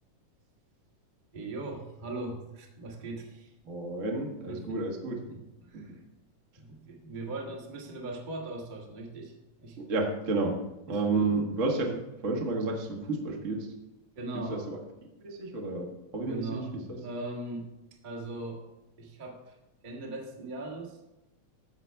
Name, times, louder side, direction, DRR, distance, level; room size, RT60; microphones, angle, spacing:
voice 1, 1.3-3.5 4.5-4.8 5.3-6.0 6.6-9.8 10.9-11.3 14.1-14.7 16.3-16.7 17.0-17.7 18.0-18.6 19.0-19.6 19.8-21.0, right 2 dB, 90° right, -1 dB, 0.4 m, -39 dB
voice 2, 3.6-5.2 5.7-6.0 9.8-10.6 10.9-11.9 12.2-13.7 14.3-14.8 15.2-17.0, right 3 dB, 50° right, 0 dB, 0.8 m, -31 dB
15.0 x 5.7 x 3.5 m, 0.95 s
omnidirectional pair, 3.8 m